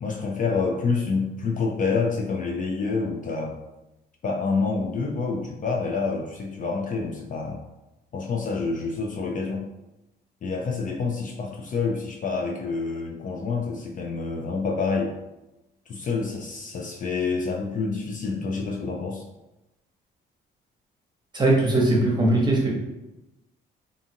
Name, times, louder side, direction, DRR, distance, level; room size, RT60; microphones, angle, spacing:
voice 1, 0.0-3.6 4.2-7.6 8.1-9.7 10.4-15.1 15.9-19.2, left 4 dB, 40° left, 1 dB, 0.4 m, -27 dB
voice 2, 21.3-22.7, right 2 dB, 20° right, -2 dB, 0.9 m, -20 dB
2.5 x 2.4 x 2.8 m, 0.98 s
cardioid pair, 90°, 20 cm